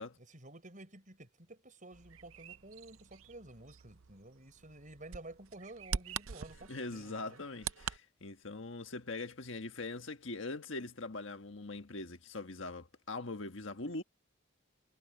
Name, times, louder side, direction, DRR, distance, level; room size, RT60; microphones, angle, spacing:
voice 1, 0.2-7.4, right 2 dB, 40° right, 6.2 m, -52 dB
Bird vocalization bird call bird song, 1.9-8.0, right 7 dB, 85° right, 0.6 m, -44 dB
voice 2, 6.7-14.0, left 3 dB, 65° left, 1.5 m, -42 dB
head